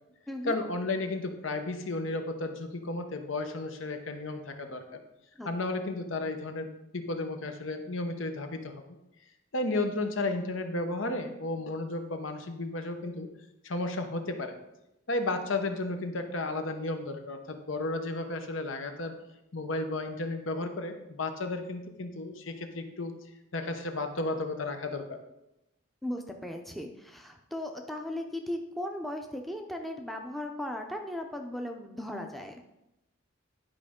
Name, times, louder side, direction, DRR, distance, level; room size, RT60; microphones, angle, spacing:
voice 1, 0.4-5.0 5.4-8.8 9.5-13.3 13.6-14.6 15.1-19.1 19.5-23.1 23.5-25.2, left 2 dB, 80° left, 6 dB, 0.9 m, -33 dB
voice 2, 26.0-32.6, left 1 dB, ahead, 3 dB, 0.5 m, -37 dB
11.0 x 5.2 x 3.7 m, 0.93 s
head